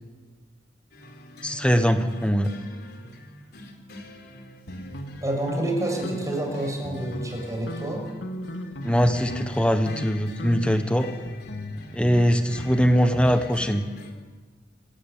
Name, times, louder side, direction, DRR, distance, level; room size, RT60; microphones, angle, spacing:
sound 1, 0.9-14.1, left 1 dB, 55° left, 4.2 m, -45 dB
voice 1, 1.4-2.5 8.8-11.1 11.9-13.9, equal, 5° left, 7 dB, 1.3 m, -22 dB
sound 2, 4.7-6.5 6.8-7.4 7.7-9.6 9.9-10.1 10.4-13.4, equal, 70° left, 2.4 m, -37 dB
voice 2, 5.2-8.0, right 1 dB, 15° right, 2 dB, 6.2 m, -28 dB
27.5 x 14.5 x 9.1 m, 1.3 s
head